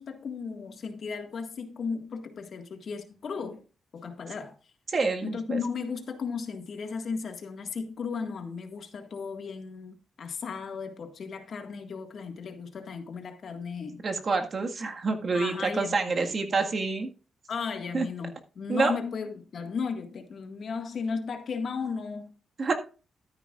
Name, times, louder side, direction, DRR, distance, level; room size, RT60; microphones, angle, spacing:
voice 1, 0.0-3.6 3.9-4.5 5.2-14.0 15.3-16.3 17.5-22.3, left 5 dB, 60° left, 1.8 m, -35 dB
voice 2, 4.9-5.6 14.0-17.1 17.9-18.1 18.7-18.9 22.6-22.7, right 4 dB, 45° right, 1.7 m, -27 dB
12.5 x 10.0 x 2.5 m
cardioid pair, 95°, 0 cm